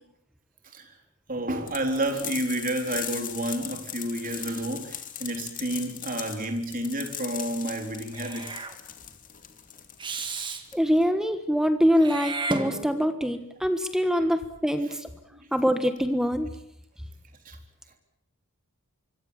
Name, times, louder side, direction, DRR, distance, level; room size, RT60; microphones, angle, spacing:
voice 1, 1.3-8.5 17.5-17.6, right 1 dB, 40° right, 5 dB, 4.0 m, -30 dB
sound 1, 1.7-11.1, left 10 dB, 35° left, 2.6 m, -39 dB
Meow / Hiss, 8.1-8.7 10.0-10.6 12.0-13.2, right 3 dB, 20° right, 2.1 m, -33 dB
voice 2, 10.7-15.1 15.5-16.5, equal, ahead, 9 dB, 1.3 m, -24 dB
25.0 x 24.5 x 7.2 m, 0.74 s
head